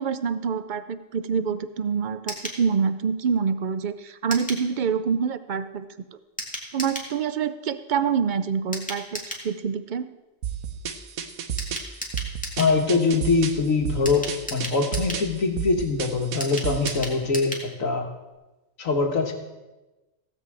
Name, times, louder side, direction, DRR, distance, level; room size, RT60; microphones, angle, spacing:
voice 1, 0.0-5.9 6.7-10.0, right 6 dB, 55° right, 11 dB, 0.5 m, -26 dB
sound 1, 2.3-2.6 4.3-4.7 6.4-7.1 8.7-9.5 11.6-12.8 14.1-15.3 16.4-17.7 18.0-18.1 18.3-18.4, equal, 5° left, 1.9 m, -34 dB
sound 2, 10.4-17.1, right 8 dB, 85° right, 1.3 m, -32 dB
voice 2, 12.6-18.1 18.8-19.3, left 4 dB, 75° left, 4 dB, 1.8 m, -23 dB
16.0 x 5.5 x 7.7 m, 1.1 s
omnidirectional pair, 1.4 m